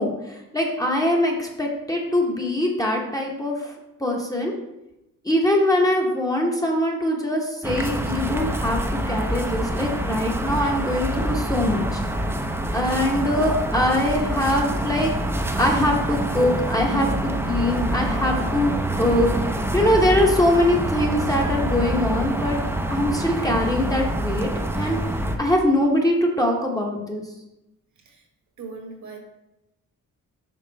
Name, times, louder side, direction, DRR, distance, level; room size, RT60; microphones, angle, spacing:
voice 1, 0.0-3.7 4.0-4.5 5.2-12.0 12.7-15.1 15.6-19.3 19.7-22.6 22.9-24.5 24.7-25.0 25.4-27.2, left 1 dB, 10° left, -1 dB, 0.8 m, -22 dB
sound 1, 7.6-25.4, right 1 dB, 5° right, 0.5 m, -26 dB
voice 2, 28.6-29.2, right 4 dB, 60° right, 2 dB, 1.3 m, -39 dB
5.3 x 3.6 x 5.3 m, 0.92 s
wide cardioid pair, 140°, 33 cm